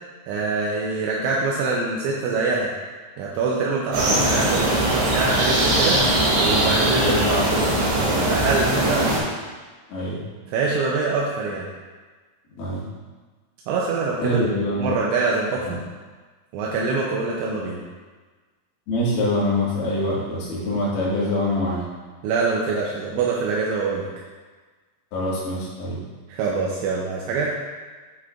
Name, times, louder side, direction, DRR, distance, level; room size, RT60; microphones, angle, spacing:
voice 1, 0.3-2.7 3.2-6.0 6.4-7.2 7.5-7.7 8.0-9.1 10.5-11.7 13.7-14.4 14.8-15.8 16.5-17.8 22.2-24.1 26.3-27.6, right 4 dB, 85° right, -3 dB, 2.9 m, -24 dB
sound 1, 3.9-9.2, right 1 dB, 65° right, 4.4 m, -21 dB
voice 2, 7.0-8.3 9.9-10.2 12.5-12.9 14.2-14.9 15.6-15.8 18.9-21.9 25.1-26.0, left 1 dB, 80° left, -7 dB, 4.5 m, -25 dB
11.5 x 4.8 x 2.5 m, 1.4 s
omnidirectional pair, 5.9 m